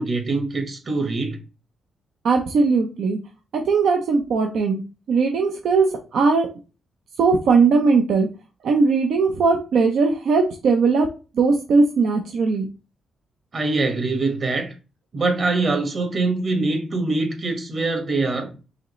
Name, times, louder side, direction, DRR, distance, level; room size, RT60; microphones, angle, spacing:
voice 1, 0.0-1.4 13.5-14.7 15.1-18.5, right 3 dB, 45° right, 1.5 m, -23 dB
voice 2, 2.2-3.2 3.5-4.8 5.1-5.9 6.1-6.5 7.2-8.3 8.6-11.1 11.3-12.7, right 4 dB, 70° right, 0.7 m, -19 dB
4.9 x 3.1 x 3.1 m
cardioid pair, 110°, 0 cm